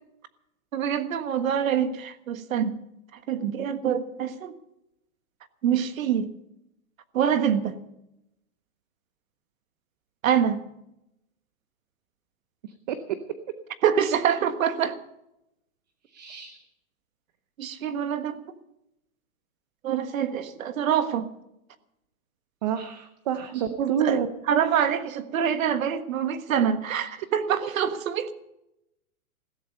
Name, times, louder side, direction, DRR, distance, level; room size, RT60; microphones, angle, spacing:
voice 1, 0.7-2.7 3.3-4.5 5.6-6.3 7.1-7.7 10.2-10.6 13.8-15.0 17.6-18.4 19.8-21.3 23.8-24.2 24.5-28.3, right 8 dB, 65° right, 10 dB, 1.6 m, -25 dB
voice 2, 12.6-13.0 16.1-16.6 22.6-24.3 27.0-27.1, right 8 dB, 30° right, 10 dB, 0.7 m, -29 dB
16.0 x 14.5 x 5.4 m, 0.86 s
hypercardioid pair, 170°, 43 cm